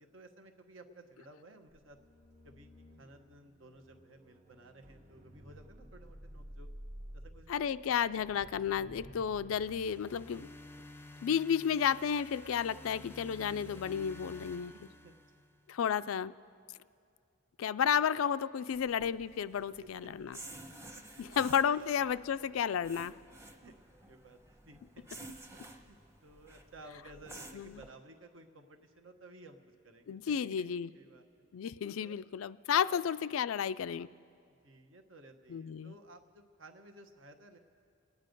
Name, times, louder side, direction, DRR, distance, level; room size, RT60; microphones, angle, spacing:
voice 1, 0.0-2.0 2.4-6.7 7.1-8.1 14.7-15.2 19.8-20.1 20.9-21.5 21.7-21.9 23.5-23.7 24.1-25.1 25.5-31.5 32.0-32.2 32.9-33.0 34.4-37.6, right 2 dB, 70° right, 5 dB, 1.2 m, -56 dB
sound 1, 1.7-12.0 12.3-12.6, equal, 40° right, 1.2 m, -53 dB
voice 2, 7.5-10.5 11.2-14.7 15.7-16.3 17.6-20.4 21.2-23.1 27.5-27.8 30.1-30.9 31.5-34.1 35.5-35.9, left 8 dB, 85° left, 15 dB, 0.4 m, -32 dB
sound 2, 9.5-15.7, left 2 dB, 10° left, 0.5 m, -51 dB
sound 3, 18.7-27.9, right 2 dB, 15° right, 1.0 m, -52 dB
28.0 x 9.7 x 5.3 m, 2.4 s
head